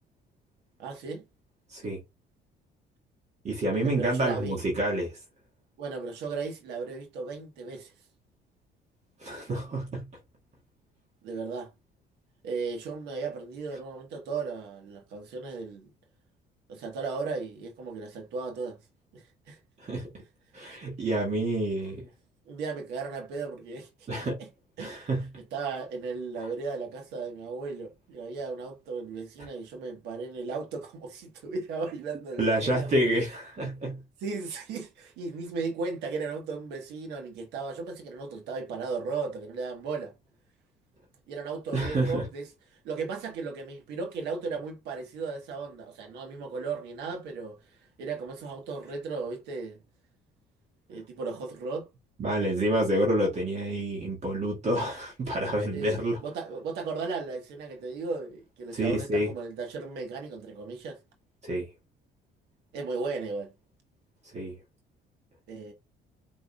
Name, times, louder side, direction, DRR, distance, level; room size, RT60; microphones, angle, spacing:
voice 1, 0.8-1.3 3.7-4.6 5.8-7.9 11.2-11.7 12.4-15.9 16.7-18.8 19.1-19.6 22.5-24.5 24.8-25.1 25.5-32.9 34.2-40.1 41.3-42.5 42.8-49.8 50.9-51.9 55.7-61.0 62.7-63.5 65.5-65.7, right 4 dB, 85° right, 1.4 m, -36 dB
voice 2, 3.4-5.1 9.2-10.1 19.8-20.1 20.5-22.1 24.1-24.4 24.8-25.3 32.4-34.0 41.7-42.2 52.2-56.2 58.7-59.3 61.4-61.7 64.3-64.6, right 1 dB, 40° right, 1.9 m, -28 dB
5.0 x 3.6 x 2.3 m
cardioid pair, 110°, 17 cm